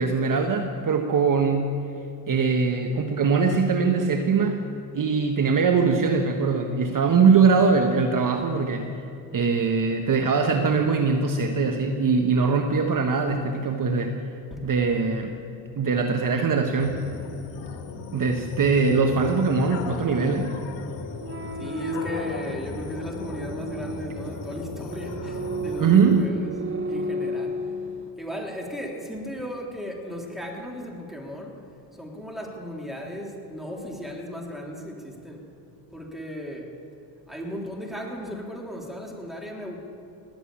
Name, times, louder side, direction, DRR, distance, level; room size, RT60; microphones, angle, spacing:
voice 1, 0.0-1.8 2.3-4.6 4.9-8.9 9.3-14.2 14.6-15.3 15.8-17.1 18.1-20.6 25.8-26.3, right 5 dB, 40° right, 4 dB, 1.3 m, -22 dB
sound 1, 16.8-26.3, left 4 dB, 60° left, 1.8 m, -37 dB
sound 2, 21.1-28.1, equal, 25° right, 1.6 m, -34 dB
voice 2, 21.6-27.8 28.2-35.5 35.9-36.8 37.3-39.8, equal, ahead, -1 dB, 3.5 m, -36 dB
19.0 x 7.9 x 8.8 m, 2.7 s
supercardioid pair, 65°, 48 cm